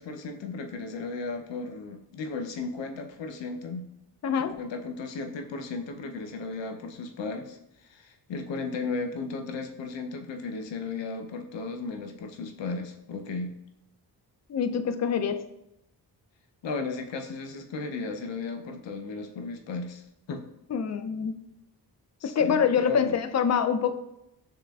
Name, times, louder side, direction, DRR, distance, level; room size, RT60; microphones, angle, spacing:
voice 1, 0.0-3.9 4.4-7.6 7.9-13.6 16.6-20.0 20.3-20.4 22.2-23.2, left 3 dB, 80° left, 5 dB, 0.7 m, -35 dB
voice 2, 4.2-4.6 14.5-15.4 20.7-21.4 22.2-23.9, left 7 dB, 40° left, 9 dB, 0.4 m, -25 dB
7.2 x 3.1 x 2.3 m, 0.87 s
cardioid pair, 60°, 43 cm